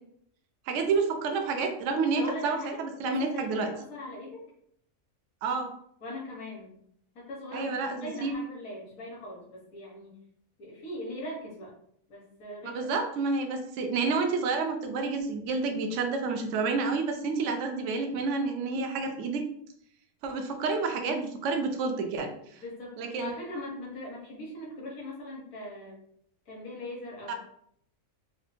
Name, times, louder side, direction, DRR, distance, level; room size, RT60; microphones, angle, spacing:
voice 1, 0.7-3.7 5.4-5.7 7.5-8.3 12.6-19.4 20.2-22.3 23.0-23.3 27.3-27.4, right 4 dB, 70° right, 4 dB, 0.8 m, -29 dB
voice 2, 2.2-4.4 6.0-6.8 7.1-7.7 8.0-10.2 10.6-11.7 12.1-13.0 22.6-26.0 26.5-27.3, left 1 dB, 75° left, -3 dB, 1.4 m, -40 dB
4.3 x 2.1 x 2.5 m, 0.69 s
omnidirectional pair, 1.4 m